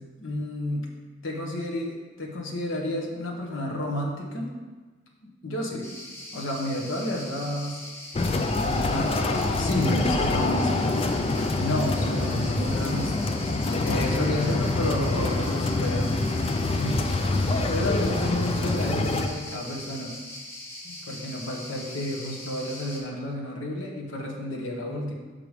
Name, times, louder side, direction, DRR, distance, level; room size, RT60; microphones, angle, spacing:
voice 1, 0.2-0.9 1.2-4.5 5.2-5.9 6.3-7.8 8.5-10.9 11.5-13.4 13.8-16.2 16.8-20.2 20.8-25.1, left 1 dB, 75° left, -1 dB, 1.3 m, -31 dB
sound 1, 5.8-23.0, left 1 dB, 15° left, 1.2 m, -41 dB
sound 2, 8.1-19.3, left 2 dB, 30° left, 0.4 m, -26 dB
5.9 x 5.1 x 5.0 m, 1.3 s
head